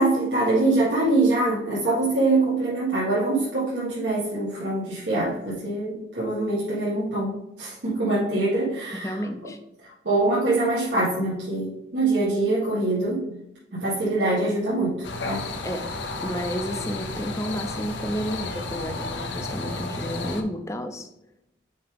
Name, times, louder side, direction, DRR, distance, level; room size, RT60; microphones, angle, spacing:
voice 1, 0.0-9.2 10.1-13.3 13.7-15.4, right 2 dB, 85° right, -8 dB, 1.8 m, -24 dB
voice 2, 9.0-9.6 15.6-15.9 16.2-21.1, equal, 15° left, 7 dB, 0.5 m, -31 dB
sound 1, 15.0-20.4, left 2 dB, 85° left, 0.8 m, -32 dB
5.7 x 5.0 x 3.5 m, 0.89 s
head